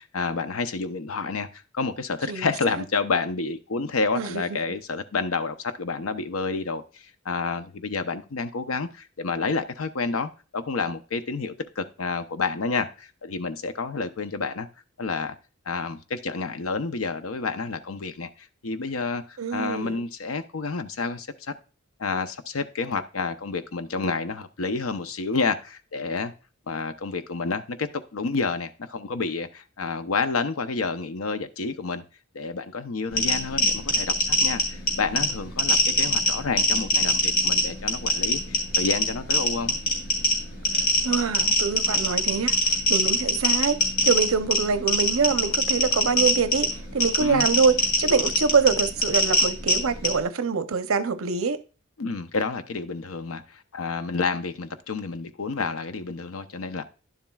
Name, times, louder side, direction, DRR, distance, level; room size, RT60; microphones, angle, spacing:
voice 1, 0.0-14.7 15.0-15.4 15.7-21.5 22.0-26.3 26.7-32.0 32.3-39.8 47.2-47.5 52.0-56.8, left 4 dB, 85° left, 0.7 m, -29 dB
voice 2, 19.4-20.0 41.0-51.6, right 5 dB, 85° right, 0.6 m, -24 dB
sound 1, 33.1-50.2, left 1 dB, 55° left, 2.9 m, -24 dB
11.0 x 7.2 x 2.3 m
head